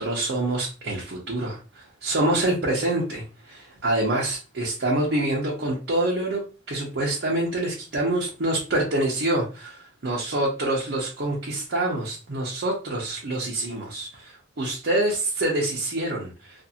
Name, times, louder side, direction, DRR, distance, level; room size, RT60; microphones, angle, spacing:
voice 1, 0.0-16.7, right 1 dB, 65° right, -4 dB, 0.7 m, -26 dB
2.5 x 2.5 x 2.7 m, 0.33 s
head